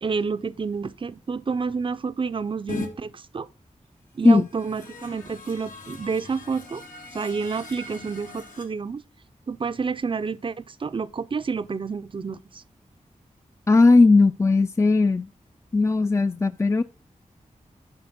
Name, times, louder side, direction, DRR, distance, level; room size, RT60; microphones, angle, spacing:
voice 1, 0.0-3.5 4.1-6.8 7.1-9.0 9.5-12.6, right 5 dB, 40° right, 0.5 m, -29 dB
sound 1, 2.7-2.9 4.3-8.6, left 3 dB, 85° left, 2.0 m, -39 dB
voice 2, 13.7-15.3 15.7-16.8, left 3 dB, 20° left, 0.4 m, -17 dB
10.5 x 4.2 x 5.9 m
wide cardioid pair, 105°, 13 cm